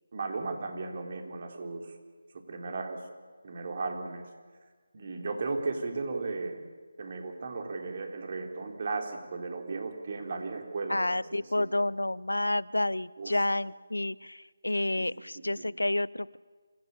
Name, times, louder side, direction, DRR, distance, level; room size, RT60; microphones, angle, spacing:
voice 1, 0.1-1.9 2.5-3.0 3.4-4.3 4.9-6.6 7.0-11.7 13.2-13.4 14.9-15.1 15.6-15.8, right 3 dB, 45° right, 3 dB, 4.0 m, -36 dB
voice 2, 10.9-16.4, left 1 dB, 90° left, 21 dB, 0.6 m, -30 dB
26.5 x 16.5 x 8.7 m, 1.5 s
figure-of-eight pair, 160°, 0 cm